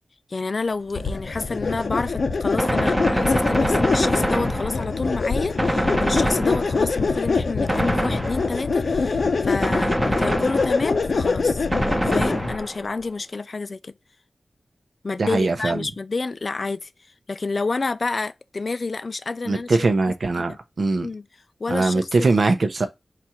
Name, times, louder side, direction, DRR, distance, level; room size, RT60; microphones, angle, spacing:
voice 1, 0.3-11.7 12.0-13.9 15.0-16.9 17.3-19.8 20.1-20.6 21.0-21.2 21.6-22.3, left 3 dB, 55° left, 0.3 m, -29 dB
sound 1, 0.9-12.6, left 4 dB, 80° left, 0.7 m, -24 dB
Gunshot gunfire, 2.6-5.1 5.6-7.0 7.7-8.7 9.6-11.0 11.7-12.9, equal, 10° right, 0.8 m, -24 dB
voice 2, 15.2-15.8 19.5-21.1 21.7-22.9, right 3 dB, 65° right, 0.7 m, -21 dB
4.2 x 2.5 x 4.3 m
wide cardioid pair, 90°, 0 cm